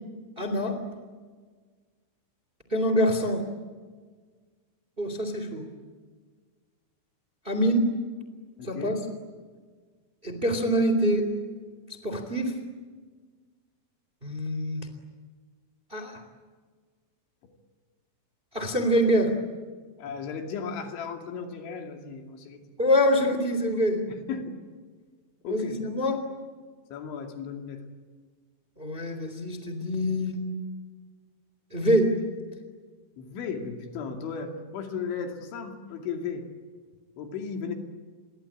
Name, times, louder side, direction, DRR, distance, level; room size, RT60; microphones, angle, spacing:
voice 1, 0.4-0.7 2.7-3.4 5.0-5.6 7.4-7.8 8.6-8.9 10.2-11.2 12.0-12.5 14.2-14.9 15.9-16.1 18.5-19.3 22.8-24.0 25.5-26.2 28.8-30.4 31.7-32.0, equal, 15° right, 7 dB, 2.3 m, -25 dB
voice 2, 8.6-9.0 17.4-17.5 20.0-22.6 24.1-24.6 25.4-25.8 26.9-27.8 31.9-32.0 33.2-36.5 37.2-37.7, left 6 dB, 75° left, 4 dB, 4.9 m, -35 dB
29.0 x 23.0 x 8.7 m, 1.5 s
omnidirectional pair, 5.5 m